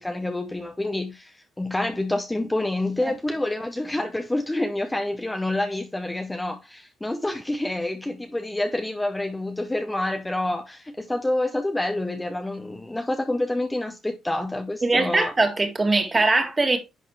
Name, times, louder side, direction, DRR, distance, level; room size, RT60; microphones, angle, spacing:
voice 1, 0.0-15.3, left 1 dB, 10° left, 0.7 m, -28 dB
voice 2, 14.8-16.8, right 3 dB, 25° right, 1.9 m, -21 dB
10.0 x 4.1 x 3.1 m
cardioid pair, 90°, 0 cm